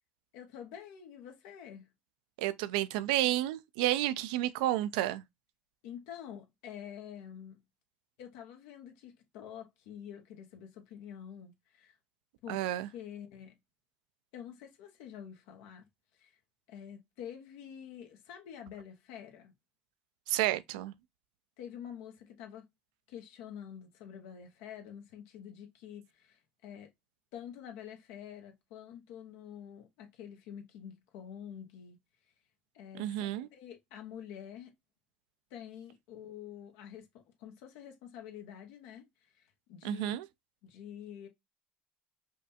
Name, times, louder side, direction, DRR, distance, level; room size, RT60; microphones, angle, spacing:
voice 1, 0.3-1.9 5.8-7.6 8.2-12.0 12.4-13.6 14.3-15.9 16.1-16.3 16.7-19.5 21.6-22.7 23.1-26.9 27.3-32.0 32.7-34.7 35.5-40.1 40.6-41.3, left 9 dB, 85° left, 1.0 m, -47 dB
voice 2, 2.4-5.2 12.5-12.9 20.3-20.9 33.0-33.5 39.8-40.2, right 14 dB, 90° right, 0.3 m, -31 dB
5.1 x 2.3 x 2.6 m
supercardioid pair, 80°, 4 cm